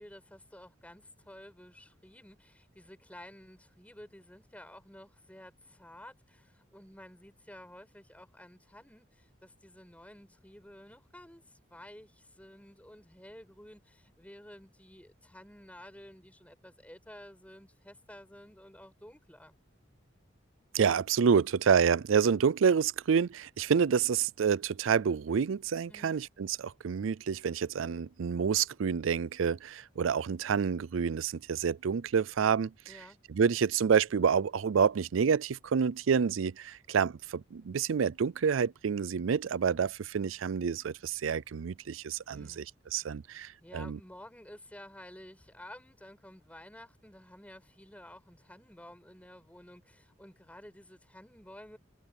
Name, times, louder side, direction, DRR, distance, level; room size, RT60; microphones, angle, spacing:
voice 1, 0.0-19.5 25.9-26.2 32.9-33.2 42.3-42.7 42.9-43.1 43.6-51.8, left 1 dB, 5° left, 7.1 m, -52 dB
voice 2, 20.7-32.9 33.3-42.6 42.9-44.0, right 6 dB, 85° right, 0.4 m, -28 dB
head